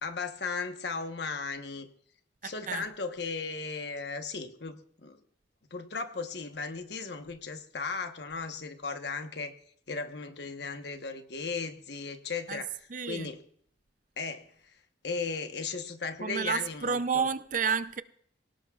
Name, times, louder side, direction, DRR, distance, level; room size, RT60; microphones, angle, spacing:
voice 1, 0.0-1.9 2.4-5.2 5.7-9.6 9.9-12.8 13.1-13.4 14.2-14.5 15.0-17.2, left 4 dB, 65° left, 1.2 m, -36 dB
voice 2, 2.4-2.8 12.5-12.6 12.9-13.3 16.2-18.0, right 6 dB, 45° right, 0.5 m, -30 dB
24.5 x 17.5 x 2.4 m
head